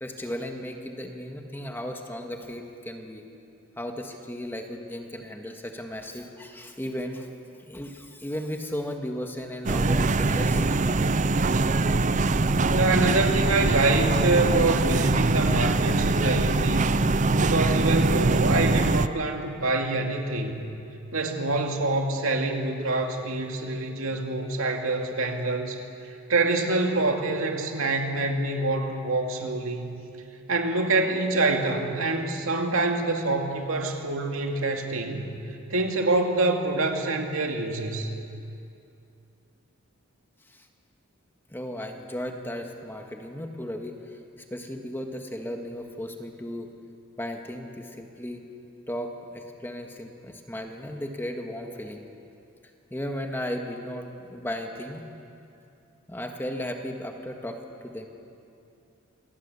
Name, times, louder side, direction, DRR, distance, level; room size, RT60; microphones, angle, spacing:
voice 1, 0.0-3.2 3.8-7.3 7.7-11.1 40.5-40.7 41.5-44.0 44.5-46.7 47.2-48.5 48.9-52.1 52.9-55.0 56.1-58.1, equal, 10° left, 3 dB, 1.7 m, -35 dB
sound 1, 9.7-19.1, right 3 dB, 35° right, 0.6 m, -23 dB
voice 2, 12.7-16.9 17.4-20.6 21.1-25.8 26.3-30.0 30.5-35.3 35.7-38.1, right 2 dB, 80° right, 3 dB, 2.4 m, -26 dB
27.5 x 18.0 x 8.4 m, 2.6 s
head